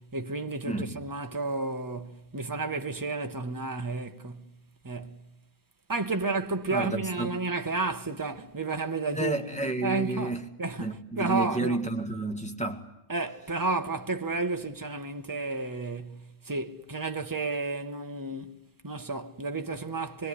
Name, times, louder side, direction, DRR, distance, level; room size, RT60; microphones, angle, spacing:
voice 1, 0.0-4.5 4.8-5.2 5.9-9.4 9.8-11.8 13.1-20.3, right 3 dB, 15° right, 1.2 m, -32 dB
voice 2, 0.7-1.0 6.7-7.4 9.1-10.4 10.8-12.8, right 2 dB, 5° left, 2.1 m, -31 dB
25.5 x 22.0 x 9.8 m
omnidirectional pair, 1.2 m